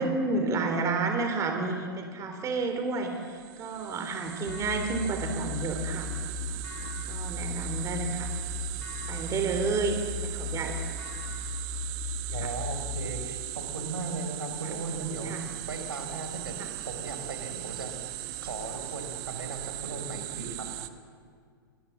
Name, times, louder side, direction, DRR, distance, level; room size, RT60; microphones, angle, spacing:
voice 1, 0.0-6.1 6.8-8.3 9.1-10.7 12.4-12.5 14.8-15.4, right 3 dB, 25° right, 5 dB, 3.6 m, -31 dB
sound 1, 3.2-20.9, right 16 dB, 45° right, 1.6 m, -39 dB
sound 2, 4.5-13.1, left 3 dB, 65° left, 4.6 m, -36 dB
voice 2, 12.3-15.4 15.7-16.6 16.8-17.9 18.4-20.7, right 3 dB, 80° right, 5 dB, 4.6 m, -37 dB
28.5 x 21.0 x 7.5 m, 2.1 s
figure-of-eight pair, 105°, 12 cm